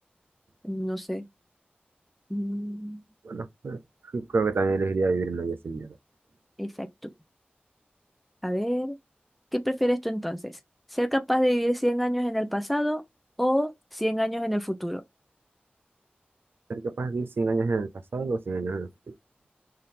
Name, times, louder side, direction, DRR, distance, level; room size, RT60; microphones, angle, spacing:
voice 1, 0.6-1.2 2.3-3.0 6.6-6.9 8.4-8.9 9.5-10.5 10.9-13.0 13.4-15.0, equal, ahead, 0.6 m, -27 dB
voice 2, 3.2-3.8 4.1-5.9 16.7-19.1, right 3 dB, 85° right, 0.5 m, -28 dB
5.6 x 2.8 x 3.4 m
cardioid pair, 40°, 4 cm